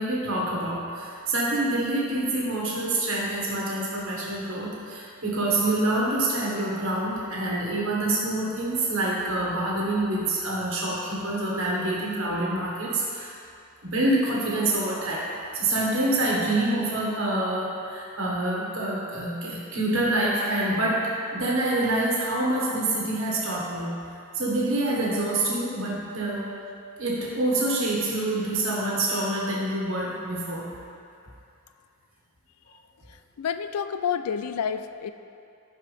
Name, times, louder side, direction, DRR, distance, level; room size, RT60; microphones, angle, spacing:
voice 1, 0.0-13.3 13.8-15.2 15.5-21.0 21.3-23.9 24.3-26.5 27.0-30.7, right 1 dB, 60° right, -5 dB, 1.5 m, -26 dB
voice 2, 33.4-35.1, left 7 dB, 90° left, 10 dB, 0.4 m, -29 dB
11.5 x 4.7 x 3.4 m, 2.5 s
head